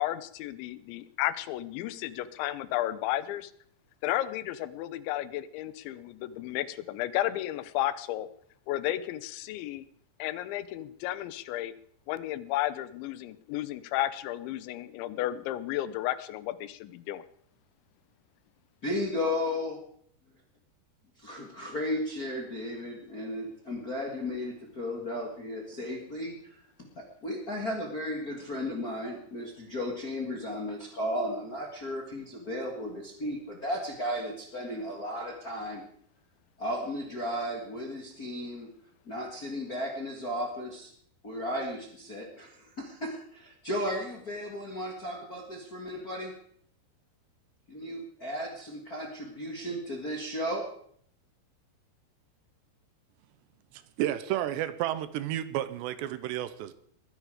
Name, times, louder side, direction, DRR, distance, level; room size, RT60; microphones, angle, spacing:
voice 1, 0.0-3.5 4.0-8.3 8.7-9.9 10.2-11.7 12.1-17.2, left 14 dB, 90° left, 15 dB, 3.2 m, -33 dB
voice 2, 18.8-19.8 21.2-35.8 36.6-38.7 39.0-40.9 41.2-46.4 47.7-50.7, left 1 dB, 50° left, 1 dB, 1.0 m, -35 dB
voice 3, 53.7-56.7, right 12 dB, 80° right, 13 dB, 2.9 m, -32 dB
21.5 x 10.0 x 5.0 m, 0.63 s
omnidirectional pair, 5.1 m